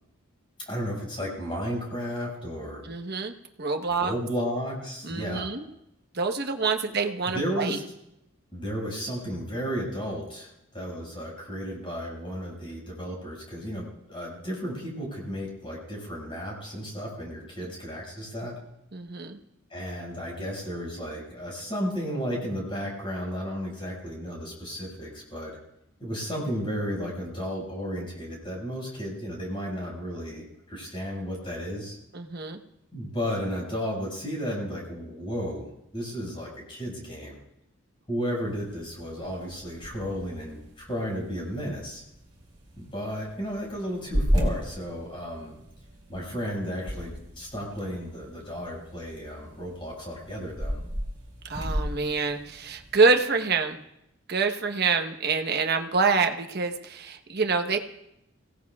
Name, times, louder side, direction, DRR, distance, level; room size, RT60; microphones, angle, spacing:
voice 1, 0.7-2.9 4.0-5.5 7.2-7.8 8.5-18.6 19.7-25.6 26.0-32.0 32.9-37.4 38.1-42.0 42.8-45.6 46.1-50.8, equal, 25° left, -3 dB, 5.8 m, -33 dB
voice 2, 2.8-4.1 5.0-5.6 6.1-7.8 17.6-17.7 18.9-19.4 32.1-32.6 51.5-53.8 54.3-57.8, right 4 dB, 50° right, 5 dB, 1.1 m, -26 dB
sound 1, 38.4-53.1, equal, 20° right, 4.9 m, -35 dB
26.0 x 17.5 x 2.4 m, 0.83 s
head